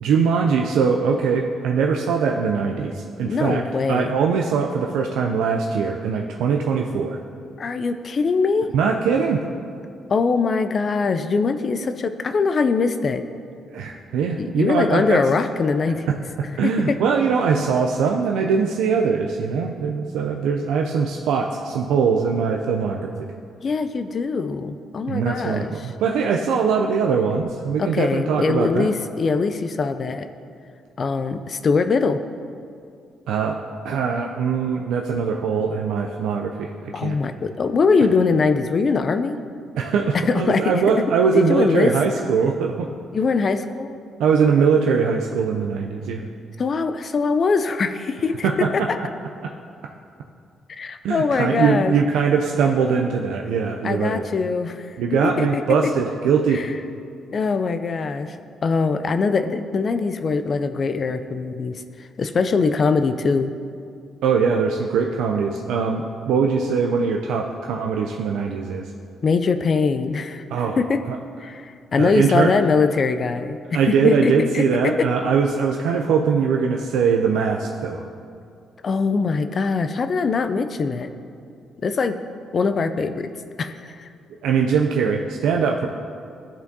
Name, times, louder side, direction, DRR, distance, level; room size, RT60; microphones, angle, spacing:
voice 1, 0.0-7.2 8.7-9.5 13.7-15.2 16.1-23.1 25.1-28.9 33.3-33.6 33.8-36.7 37.0-37.1 39.8-42.9 44.2-46.3 48.4-49.1 49.4-49.5 51.0-54.2 55.0-56.7 64.2-68.9 70.5-70.8 71.1-71.2 72.0-72.5 73.7-78.1 84.4-85.9, right 6 dB, 85° right, 2 dB, 0.3 m, -21 dB
voice 2, 3.3-4.1 7.6-8.7 10.1-13.2 14.4-16.0 16.6-17.0 23.6-25.7 27.8-30.3 31.0-32.2 36.9-39.4 40.1-40.6 41.3-41.9 43.1-44.0 46.6-49.0 50.8-52.0 53.8-55.0 55.4-55.9 56.5-56.7 57.3-58.4 58.6-63.5 69.2-70.4 70.8-71.0 71.4-75.1 78.8-81.1 81.8-82.2 82.5-83.3 83.6-84.1, left 4 dB, 45° left, 9 dB, 0.3 m, -22 dB
12.5 x 4.3 x 2.7 m, 2.4 s
cardioid pair, 90°, 0 cm